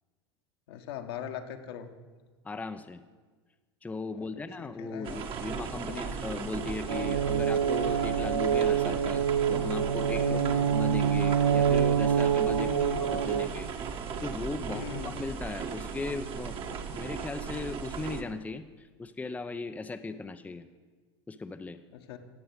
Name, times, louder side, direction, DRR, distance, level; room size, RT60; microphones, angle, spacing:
voice 1, 0.7-1.9 4.3-5.2 5.9-6.2 10.2-10.6 12.5-13.1 14.7-15.2 21.9-22.2, left 9 dB, 65° left, 5 dB, 1.6 m, -40 dB
voice 2, 2.4-3.0 3.8-12.7 13.0-14.8 15.2-16.6 16.9-20.7 21.3-21.8, left 3 dB, 10° left, 8 dB, 0.7 m, -37 dB
sound 1, 5.0-18.2, right 6 dB, 40° right, 1.5 m, -37 dB
sound 2, 6.9-13.5, right 8 dB, 80° right, 0.6 m, -26 dB
17.0 x 7.8 x 8.2 m, 1.4 s
figure-of-eight pair, 85°, 14 cm